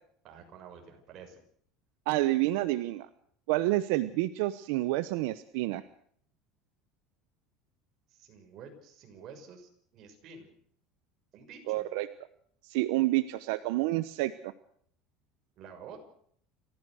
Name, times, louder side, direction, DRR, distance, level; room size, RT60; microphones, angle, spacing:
voice 1, 0.2-1.4 8.1-10.5 11.3-11.9 15.6-16.0, right 6 dB, 45° right, 4 dB, 6.4 m, -49 dB
voice 2, 2.1-3.1 3.5-5.8 11.7-12.1 12.6-14.3, right 17 dB, 80° right, 12 dB, 0.9 m, -28 dB
29.5 x 15.0 x 6.5 m, 0.63 s
cardioid pair, 150°, 0 cm